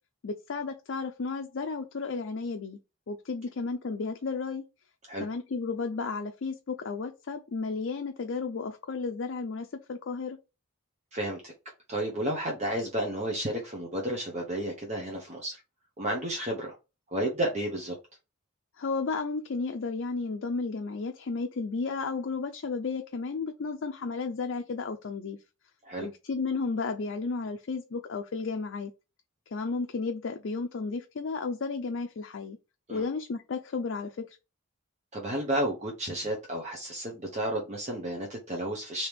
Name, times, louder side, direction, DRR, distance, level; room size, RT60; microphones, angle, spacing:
voice 1, 0.2-2.8 3.1-4.6 5.2-10.4 18.8-25.4 26.0-28.9 29.5-32.6 32.9-34.4, left 4 dB, 65° left, 0.4 m, -33 dB
voice 2, 11.1-11.5 11.9-15.6 16.0-16.8 17.1-17.9 25.8-26.1 32.9-33.1 35.1-39.1, right 1 dB, 35° right, 0.8 m, -32 dB
3.4 x 2.9 x 4.6 m
head